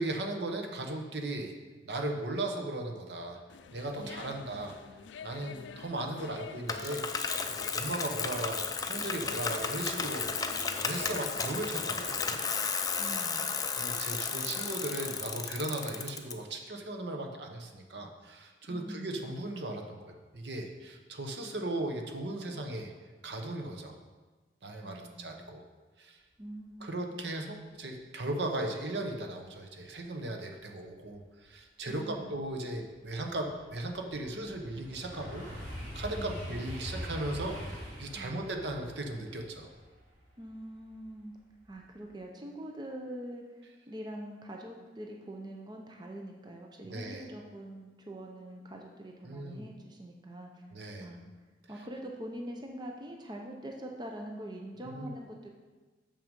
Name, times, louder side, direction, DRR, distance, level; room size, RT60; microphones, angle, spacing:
voice 1, 0.0-1.5 1.8-3.4 3.7-4.8 5.2-10.3 10.8-12.4 13.8-22.9 23.2-23.9 24.6-25.6 26.0-26.2 26.8-35.5 35.7-39.7 46.8-47.2 49.2-49.6 50.7-51.1 54.8-55.1, right 1 dB, 65° right, 3 dB, 1.0 m, -37 dB
sound 1, 3.5-13.2, left 6 dB, 80° left, 0.4 m, -48 dB
voice 2, 4.0-4.6 13.0-13.5 18.7-19.3 24.8-25.5 26.4-27.0 31.9-32.3 36.2-36.6 38.1-38.6 40.4-41.3 41.7-50.7 51.0-51.3 51.7-55.5, right 1 dB, 25° right, 1 dB, 0.7 m, -44 dB
Bicycle, 6.7-16.3, left 5 dB, 20° left, 0.4 m, -34 dB
sound 2, 31.5-31.6 32.1-41.1 41.6-41.9, equal, 45° right, 2.6 m, -43 dB
6.9 x 6.0 x 5.3 m, 1.3 s
head